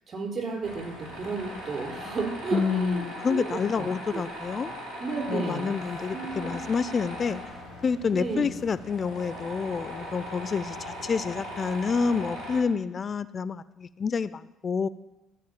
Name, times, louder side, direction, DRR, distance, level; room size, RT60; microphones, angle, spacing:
voice 1, 0.1-3.9 4.1-4.2 5.0-5.7 6.1-6.5 8.1-8.5, right 4 dB, 45° right, -1 dB, 4.1 m, -33 dB
Tools, 0.6-12.6, equal, 85° right, 2.1 m, -39 dB
voice 2, 2.5-4.7 5.3-7.4 7.8-14.9, left 5 dB, 40° left, 15 dB, 0.4 m, -28 dB
14.0 x 4.8 x 7.3 m, 0.98 s
hypercardioid pair, 50°, 0 cm